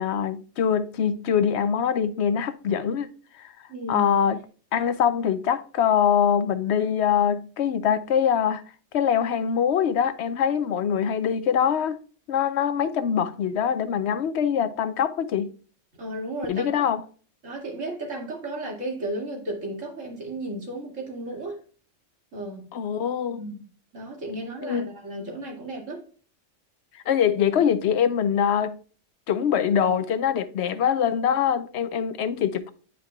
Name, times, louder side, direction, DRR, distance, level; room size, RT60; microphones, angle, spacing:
voice 1, 0.0-3.1 3.4-3.5 3.9-4.4 4.7-8.6 8.9-12.0 12.3-15.5 16.5-17.0 22.7-23.4 24.6-24.9 26.9-28.8 29.3-32.7, left 8 dB, 70° left, 0.8 m, -23 dB
voice 2, 3.7-4.1 16.0-16.9 17.4-21.6 22.3-22.7 23.3-23.6 23.9-26.0, right 1 dB, 85° right, 2.5 m, -34 dB
9.7 x 5.0 x 2.2 m
omnidirectional pair, 1.3 m